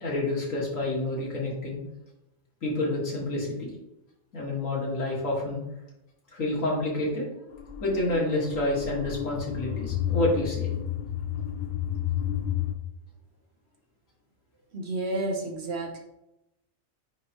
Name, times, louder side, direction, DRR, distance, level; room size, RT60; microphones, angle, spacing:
voice 1, 0.0-1.8 2.6-3.7 4.3-5.6 6.3-7.3 7.8-10.7, left 1 dB, 80° left, -4 dB, 2.2 m, -28 dB
sound 1, 7.5-12.7, left 11 dB, 60° left, 0.5 m, -31 dB
voice 2, 14.7-16.0, right 2 dB, 55° right, 0 dB, 1.1 m, -31 dB
9.6 x 3.3 x 3.0 m, 0.89 s
omnidirectional pair, 1.4 m